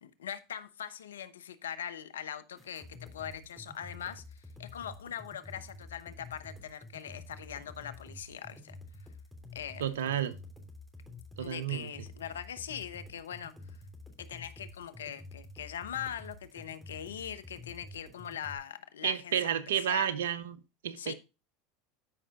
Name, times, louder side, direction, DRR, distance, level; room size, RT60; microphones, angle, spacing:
voice 1, 0.0-8.8 9.5-9.9 11.4-13.5 14.2-19.5 19.8-20.1 21.0-21.1, left 9 dB, 90° left, 0.9 m, -41 dB
sound 1, 2.6-18.6, left 2 dB, 5° right, 3.1 m, -49 dB
voice 2, 9.8-10.4 11.4-11.9 19.0-21.1, right 10 dB, 85° right, 0.8 m, -31 dB
13.0 x 5.6 x 2.5 m
hypercardioid pair, 95°, 0 cm